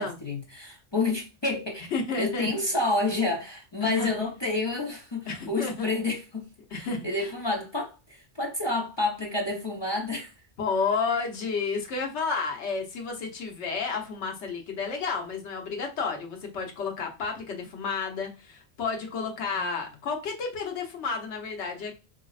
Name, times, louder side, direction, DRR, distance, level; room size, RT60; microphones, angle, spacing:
voice 1, 0.0-1.9 2.2-10.3 19.6-19.7, left 2 dB, 30° left, 0.5 m, -29 dB
voice 2, 1.9-2.5 3.8-4.1 5.3-5.9 6.7-7.3 10.6-21.9, left 4 dB, 85° left, 1.1 m, -31 dB
4.9 x 2.0 x 2.3 m
omnidirectional pair, 1.1 m